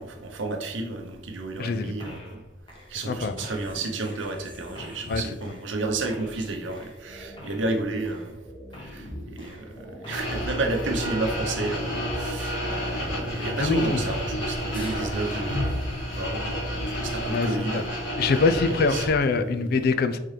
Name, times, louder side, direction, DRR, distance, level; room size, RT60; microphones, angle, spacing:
voice 1, 0.0-2.4 2.9-8.4 8.8-18.1 18.7-19.8, right 3 dB, 75° right, 4 dB, 0.8 m, -32 dB
voice 2, 1.6-2.0 3.1-3.3 5.1-5.2 13.6-14.0 17.3-17.5 17.7-17.8 18.2-20.2, left 4 dB, 50° left, 10 dB, 0.3 m, -23 dB
sound 1, 2.0-2.4 2.7-14.4 14.7-16.9, left 1 dB, 25° left, 0.9 m, -42 dB
sound 2, 10.1-19.1, equal, 70° left, 1.6 m, -30 dB
4.3 x 3.8 x 3.2 m, 0.96 s
head